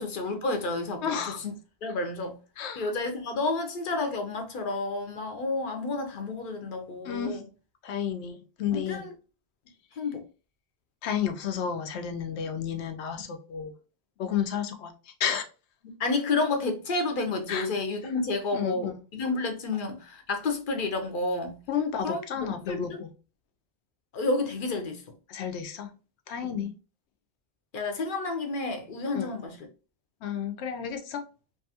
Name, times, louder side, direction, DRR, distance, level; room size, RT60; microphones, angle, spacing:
voice 1, 0.0-1.5 1.8-2.4 2.8-7.4 8.7-9.1 10.0-10.2 15.8-21.6 22.0-23.0 24.1-25.0 26.4-26.7 27.7-29.7, left 3 dB, 60° left, 0.7 m, -30 dB
voice 2, 1.0-1.4 2.6-2.9 7.0-7.4 7.8-9.1 11.0-13.7 14.2-14.9 15.2-15.4 17.5-17.7 18.5-18.9 21.7-23.1 25.3-25.9 26.3-26.7 29.1-29.3 30.2-31.2, left 8 dB, 90° left, 0.9 m, -31 dB
2.6 x 2.3 x 2.7 m
omnidirectional pair, 1.1 m